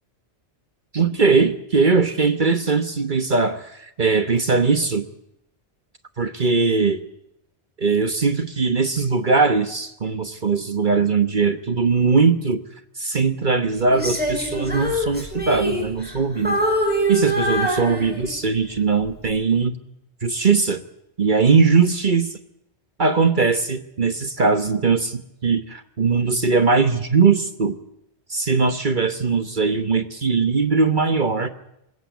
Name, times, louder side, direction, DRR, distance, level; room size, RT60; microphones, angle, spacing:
voice 1, 0.9-5.0 6.2-7.0 7.8-12.6 13.0-16.6 17.1-19.7 20.2-20.8 21.2-22.4 23.0-27.8 28.3-31.5, right 4 dB, 45° right, 10 dB, 1.3 m, -20 dB
Female singing, 13.9-16.2 16.4-18.5 19.0-19.3, equal, 10° right, 6.9 m, -24 dB
21.0 x 17.0 x 9.2 m, 0.82 s
omnidirectional pair, 1.1 m